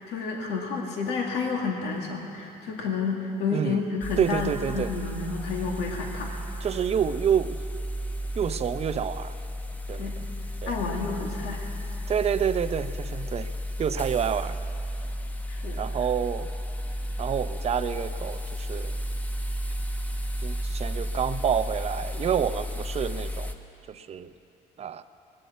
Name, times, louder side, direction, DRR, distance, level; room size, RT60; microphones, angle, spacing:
voice 1, 0.0-6.3 10.0-10.2 10.7-11.7 15.5-15.9, left 4 dB, 85° left, 0 dB, 2.1 m, -30 dB
sound 1, 4.0-23.5, equal, 10° left, 0.9 m, -33 dB
voice 2, 4.2-4.9 6.6-7.6 8.4-9.4 9.9-10.2 10.6-10.8 12.1-13.5 13.8-14.6 15.8-16.5 17.2-19.0 20.4-23.5 23.9-24.3 24.8-25.0, right 8 dB, 40° right, 12 dB, 0.6 m, -28 dB
19.5 x 8.0 x 8.3 m, 2.7 s
cardioid pair, 110°, 17 cm